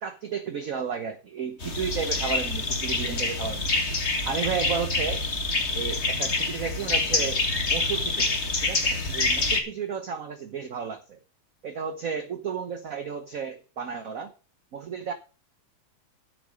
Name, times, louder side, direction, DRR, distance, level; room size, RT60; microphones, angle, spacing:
voice 1, 0.0-3.7 4.2-5.3 5.7-8.3 8.6-11.2 11.6-14.3 14.7-15.1, right 6 dB, 50° right, 8 dB, 1.1 m, -33 dB
Jungle Tropical birds and insects, 1.6-9.6, left 3 dB, 35° left, 2.0 m, -26 dB
8.9 x 8.5 x 6.3 m, 0.35 s
omnidirectional pair, 2.3 m